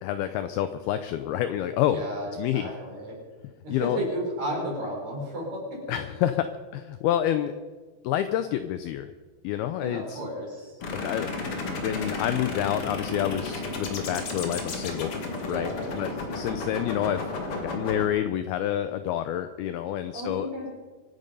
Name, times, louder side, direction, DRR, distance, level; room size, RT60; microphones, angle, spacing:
voice 1, 0.0-2.0 2.4-2.7 3.7-4.0 5.9-6.5 6.7-7.5 8.0-9.1 9.4-10.2 11.0-15.1 15.5-17.2 17.6-20.5, left 11 dB, 90° left, 10 dB, 2.2 m, -28 dB
voice 2, 1.9-3.2 3.6-5.8 9.8-10.8 15.4-16.1 20.1-20.7, equal, 40° right, -2 dB, 5.4 m, -33 dB
sound 1, 10.8-18.1, left 3 dB, 55° left, 1.6 m, -33 dB
25.5 x 9.2 x 5.4 m, 1.4 s
omnidirectional pair, 5.2 m